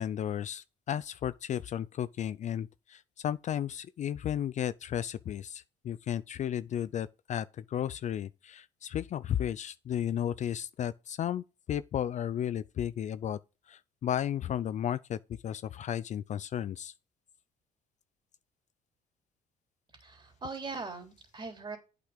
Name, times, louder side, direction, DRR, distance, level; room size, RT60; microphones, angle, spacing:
voice 1, 0.0-13.4 13.7-15.2 15.4-16.9, left 10 dB, 45° left, 0.5 m, -34 dB
voice 2, 20.0-21.8, right 4 dB, 30° right, 3.8 m, -40 dB
8.5 x 6.0 x 5.1 m
cardioid pair, 110°, 17 cm